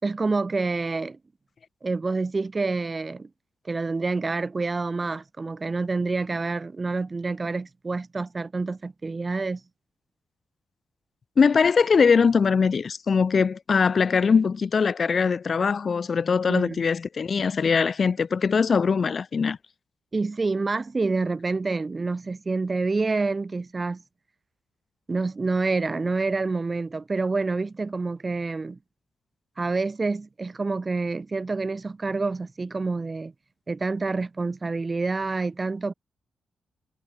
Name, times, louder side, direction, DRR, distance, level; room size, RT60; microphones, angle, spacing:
voice 1, 0.0-1.2 1.8-3.3 3.6-9.6 16.5-16.8 20.1-24.0 25.1-28.8 29.6-33.3 33.7-35.9, right 3 dB, 30° right, 5.0 m, -27 dB
voice 2, 11.4-19.6, left 5 dB, 50° left, 3.5 m, -21 dB
cardioid pair, 75°, 0 cm